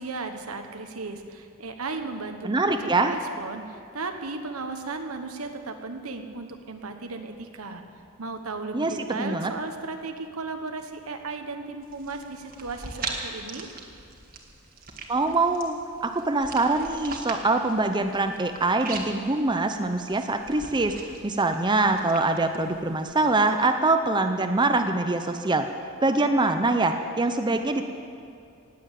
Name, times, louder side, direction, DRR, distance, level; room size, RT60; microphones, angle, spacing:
voice 1, 0.0-2.6 3.1-7.8 8.2-13.7, right 3 dB, 80° right, 6 dB, 1.3 m, -35 dB
voice 2, 2.4-3.1 8.7-9.5 15.1-21.0 21.2-25.7 26.0-27.8, right 2 dB, 20° right, 6 dB, 0.6 m, -24 dB
sound 1, 11.8-23.3, right 4 dB, 40° right, 1.7 m, -41 dB
18.5 x 7.9 x 8.4 m, 2.5 s
head